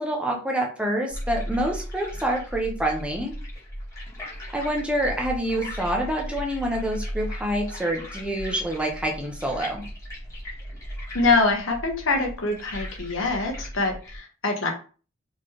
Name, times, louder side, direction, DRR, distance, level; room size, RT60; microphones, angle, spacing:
voice 1, 0.0-3.3 4.5-9.8, right 1 dB, 5° right, 0 dB, 0.7 m, -27 dB
sound 1, 1.1-14.2, equal, 15° left, 1.7 m, -36 dB
voice 2, 11.1-14.7, left 3 dB, 75° left, 2 dB, 1.2 m, -24 dB
4.2 x 3.2 x 3.0 m, 0.37 s
head